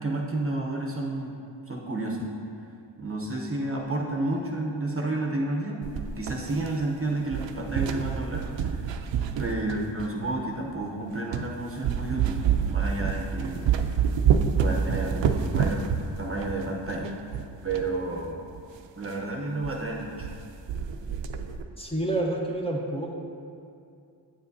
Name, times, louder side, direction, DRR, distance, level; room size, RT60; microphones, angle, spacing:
voice 1, 0.0-1.4 1.7-2.3 3.0-5.8 6.2-8.8 9.4-13.7 14.6-15.8 16.2-17.2 17.6-18.5 18.9-20.3, right 2 dB, 30° right, -1 dB, 0.8 m, -31 dB
sound 1, 5.8-7.0 7.3-10.2 10.8-10.9 11.3-11.5 11.8-17.9 18.2-18.3 18.5-18.6 19.0-19.2 19.6-19.8 20.0-20.4 20.7-21.6, right 7 dB, 75° right, 0.5 m, -27 dB
voice 2, 21.8-23.1, right 1 dB, 15° left, -2 dB, 0.8 m, -28 dB
8.9 x 7.1 x 2.7 m, 2.4 s
wide cardioid pair, 90°, 45 cm